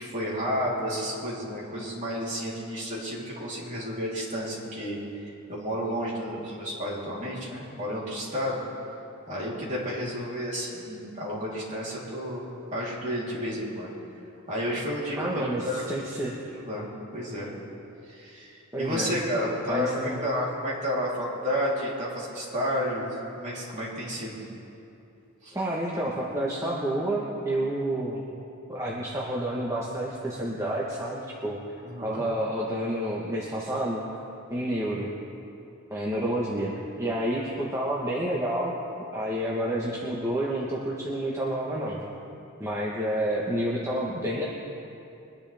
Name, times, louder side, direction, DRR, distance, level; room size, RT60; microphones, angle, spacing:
voice 1, 0.0-8.6 9.3-12.4 12.7-13.9 14.5-15.8 16.6-16.9 17.1-17.5 18.1-18.5 18.8-24.4 25.4-25.5 31.8-32.2, equal, 35° right, -6 dB, 3.5 m, -31 dB
voice 2, 15.2-16.4 18.7-19.1 19.7-20.2 25.5-28.2 28.7-31.6 32.0-34.0 34.5-35.1 35.9-38.8 39.1-42.0 42.6-44.4, right 1 dB, 15° right, -5 dB, 1.2 m, -29 dB
23.5 x 10.5 x 3.5 m, 2.8 s
head